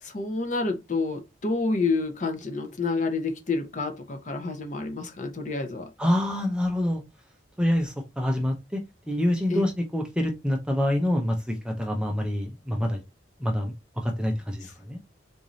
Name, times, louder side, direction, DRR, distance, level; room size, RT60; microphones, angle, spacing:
voice 1, 0.0-5.9 9.5-9.6, left 3 dB, 40° left, 0.7 m, -29 dB
voice 2, 6.0-7.0 7.6-8.8 9.1-13.0 13.4-15.0, left 1 dB, 5° right, 0.5 m, -26 dB
3.8 x 2.6 x 3.0 m
head